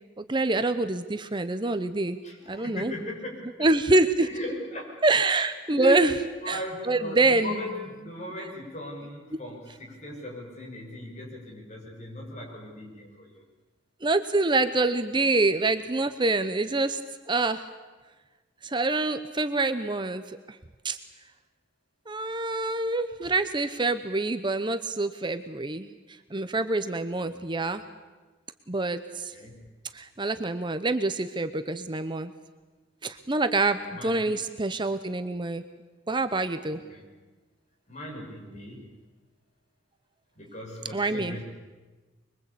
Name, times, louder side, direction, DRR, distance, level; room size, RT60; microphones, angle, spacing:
voice 1, 0.2-2.2 2.5-2.9 3.6-4.3 5.0-6.1 6.5-7.6 14.0-17.0 17.3-17.7 18.6-20.4 20.8-21.0 22.1-27.8 28.7-29.3 29.9-32.3 33.0-35.6 36.1-36.8 40.9-41.4, right 2 dB, 25° right, 10 dB, 0.8 m, -26 dB
voice 2, 2.2-3.7 4.2-5.0 5.7-13.4 27.2-27.6 29.3-29.7 33.8-34.3 36.7-37.0 37.9-38.9 40.3-41.4, left 1 dB, 40° left, 0 dB, 6.6 m, -37 dB
25.0 x 22.5 x 8.5 m, 1.3 s
head